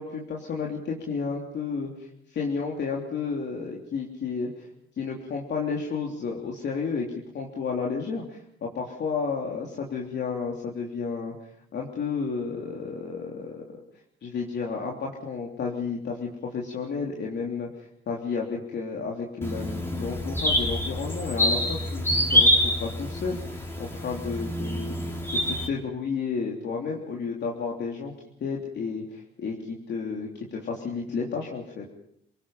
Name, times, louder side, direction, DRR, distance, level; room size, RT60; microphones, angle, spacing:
voice 1, 0.0-4.7 5.0-7.1 7.3-11.3 11.7-13.6 14.2-25.0 25.5-28.1 28.4-31.9, left 5 dB, 60° left, -1 dB, 3.4 m, -32 dB
sound 1, 19.4-25.7, left 1 dB, 10° left, 4.2 m, -26 dB
28.0 x 19.0 x 5.8 m, 0.70 s
cardioid pair, 90°, 20 cm